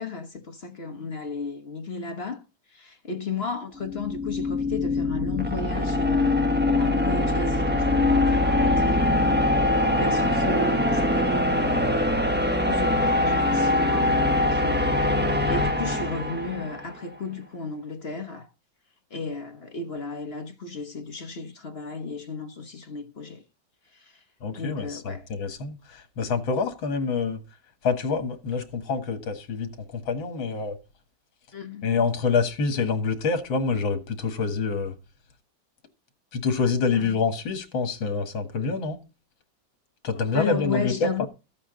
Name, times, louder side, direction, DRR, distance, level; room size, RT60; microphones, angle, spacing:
voice 1, 0.0-2.4 2.7-9.4 9.9-12.2 12.6-15.0 15.5-18.5 19.1-23.4 24.0-24.1 24.5-25.3 31.5-31.9 37.0-37.2 40.1-41.3, left 4 dB, 35° left, 1.2 m, -34 dB
sound 1, 3.8-16.9, left 2 dB, 10° right, 0.7 m, -23 dB
voice 2, 24.4-27.4 27.8-30.8 31.8-34.9 36.3-39.0 40.0-41.3, left 4 dB, 75° left, 2.4 m, -26 dB
14.0 x 8.5 x 3.9 m
omnidirectional pair, 2.2 m